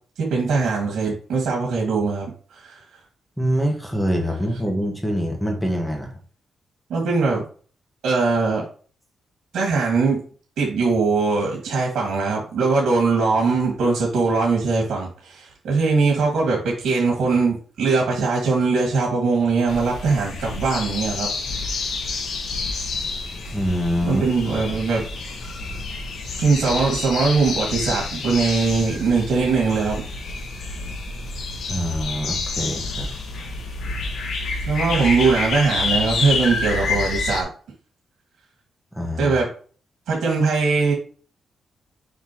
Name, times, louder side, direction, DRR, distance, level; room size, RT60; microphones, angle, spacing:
voice 1, 0.2-2.8 6.9-7.4 8.0-8.6 9.5-10.2 10.6-21.3 24.1-25.0 26.4-30.0 34.7-37.5 39.2-39.5 40.1-40.9, right 4 dB, 85° right, -2 dB, 2.1 m, -21 dB
voice 2, 3.4-6.1 23.5-24.3 31.7-33.1 38.9-39.3, equal, 5° left, 1 dB, 1.4 m, -24 dB
sound 1, 19.7-37.4, left 3 dB, 75° left, 1.7 m, -28 dB
6.0 x 5.5 x 3.0 m, 0.41 s
cardioid pair, 120°, 0 cm